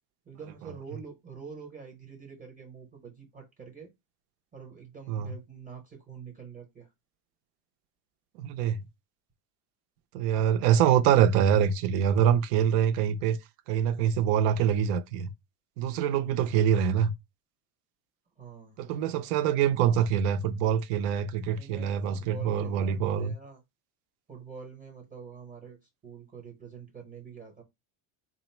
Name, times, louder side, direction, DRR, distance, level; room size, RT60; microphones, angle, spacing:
voice 1, 0.3-3.9 4.5-6.9 18.4-18.8 21.3-23.6 24.3-25.8 26.0-27.6, right 6 dB, 20° right, 0.8 m, -46 dB
voice 2, 8.4-8.8 10.1-13.4 13.7-15.3 15.8-17.1 18.8-23.3, right 9 dB, 70° right, 0.6 m, -25 dB
3.9 x 2.0 x 4.3 m
cardioid pair, 165°, 43 cm